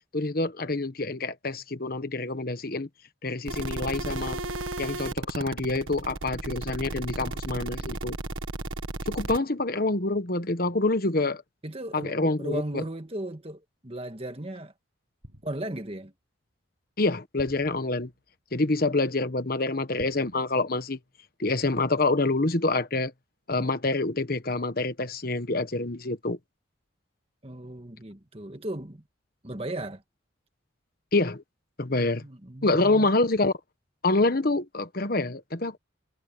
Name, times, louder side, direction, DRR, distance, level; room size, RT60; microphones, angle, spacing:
voice 1, 0.1-2.9 3.2-4.4 4.8-8.2 9.1-11.4 11.9-12.8 17.0-18.1 18.5-21.0 21.4-23.1 23.5-26.4 31.1-31.4 31.8-32.2 32.6-33.5 34.0-35.8, left 2 dB, 45° left, 1.3 m, -26 dB
sound 1, 3.5-9.4, right 2 dB, 90° right, 1.5 m, -34 dB
voice 2, 11.6-14.7 15.4-16.1 27.4-29.0 29.4-30.0 32.2-33.1, right 1 dB, 30° right, 1.8 m, -36 dB
sound 2, 15.2-16.0 17.4-18.4 20.0-21.1 21.4-21.6, equal, 75° right, 5.9 m, -51 dB
head